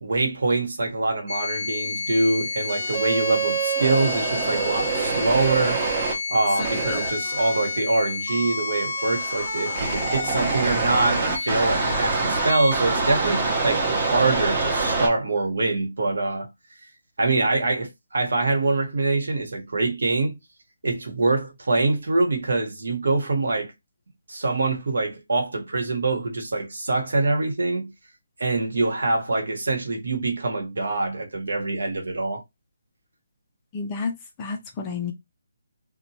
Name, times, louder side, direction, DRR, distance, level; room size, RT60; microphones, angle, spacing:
voice 1, 0.0-5.9 6.3-16.5 17.2-20.4 20.8-23.7 24.3-27.9 28.4-32.4, right 3 dB, 70° right, 1.1 m, -24 dB
sound 1, 1.3-15.1, right 2 dB, 15° right, 0.7 m, -26 dB
voice 2, 33.7-35.1, left 5 dB, 15° left, 0.3 m, -31 dB
2.8 x 2.1 x 2.7 m
hypercardioid pair, 175°, 0 cm